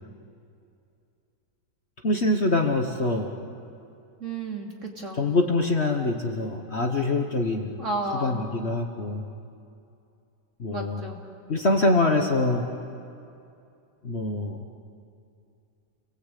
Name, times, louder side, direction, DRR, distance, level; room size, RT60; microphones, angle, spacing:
voice 1, 2.0-3.3 5.1-7.7 8.2-9.2 10.6-11.0 11.5-12.7 14.0-14.6, left 2 dB, 40° left, 3 dB, 1.4 m, -24 dB
voice 2, 4.2-5.2 7.8-8.4 10.7-11.2, right 2 dB, 45° right, 0 dB, 3.0 m, -32 dB
29.5 x 20.0 x 8.4 m, 2.6 s
omnidirectional pair, 1.9 m